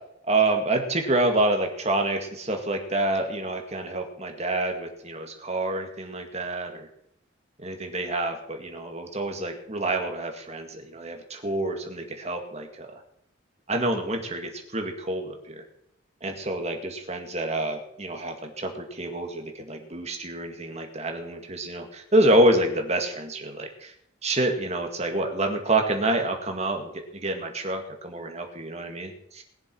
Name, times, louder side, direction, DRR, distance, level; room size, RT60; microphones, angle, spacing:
voice 1, 0.3-6.9 7.6-12.9 13.7-15.6 16.2-23.9 24.2-29.4, right 2 dB, 35° right, 4 dB, 2.1 m, -27 dB
20.5 x 7.4 x 6.1 m, 0.73 s
head